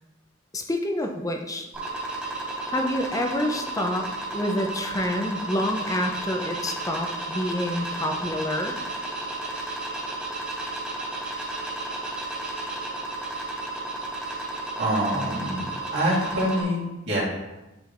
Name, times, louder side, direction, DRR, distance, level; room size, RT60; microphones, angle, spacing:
voice 1, 0.5-1.7 2.7-8.8, left 1 dB, 15° left, 3 dB, 0.6 m, -28 dB
sound 1, 1.7-16.6, right 2 dB, 10° right, 1.8 m, -33 dB
voice 2, 14.7-17.2, equal, 60° right, -6 dB, 2.0 m, -26 dB
9.2 x 5.0 x 2.5 m, 1.0 s
head